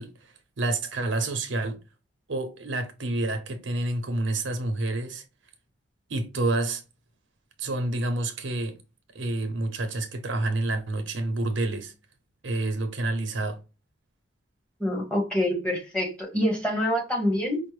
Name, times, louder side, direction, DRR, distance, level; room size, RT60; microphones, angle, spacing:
voice 1, 0.0-1.8 2.3-5.2 6.1-6.8 7.6-8.8 9.1-11.9 12.4-13.6, right 2 dB, 70° right, 0.7 m, -28 dB
voice 2, 14.8-17.6, left 1 dB, 5° left, 1.1 m, -26 dB
5.1 x 2.1 x 3.1 m
head